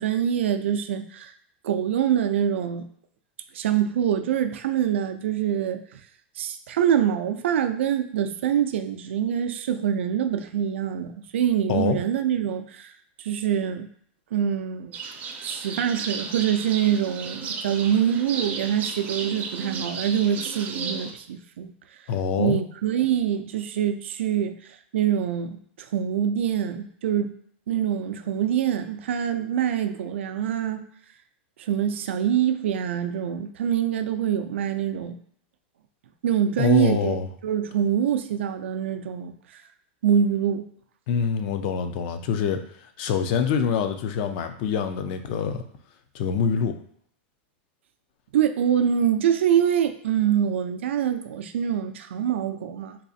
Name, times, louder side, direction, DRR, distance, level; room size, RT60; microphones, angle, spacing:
voice 1, 0.0-1.3 1.6-2.9 3.5-6.0 6.4-12.9 13.2-13.9 14.3-14.9 15.4-21.7 22.4-24.5 24.9-27.3 27.7-30.8 31.6-35.2 36.2-37.2 37.4-39.6 40.0-40.7 48.3-53.0, right 9 dB, 90° right, 8 dB, 0.4 m, -25 dB
sound 1, 14.9-21.1, right 5 dB, 25° right, 0.4 m, -34 dB
voice 2, 22.1-22.6 36.6-37.3 41.1-45.6 46.1-46.7, left 6 dB, 50° left, 8 dB, 0.4 m, -25 dB
3.9 x 2.4 x 2.6 m, 0.64 s
supercardioid pair, 150°, 6 cm